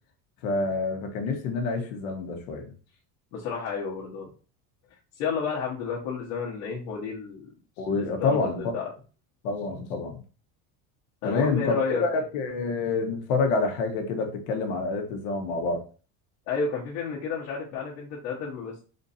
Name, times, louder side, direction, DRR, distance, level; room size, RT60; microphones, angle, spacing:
voice 1, 0.4-2.7 7.8-8.6 9.4-10.2 11.2-15.8, left 3 dB, 85° left, 3 dB, 1.4 m, -27 dB
voice 2, 3.3-4.3 5.2-7.5 7.9-8.9 11.2-12.0 16.5-18.8, left 5 dB, 60° left, -4 dB, 1.4 m, -31 dB
4.3 x 2.7 x 4.2 m, 0.36 s
cardioid pair, 180°, 39 cm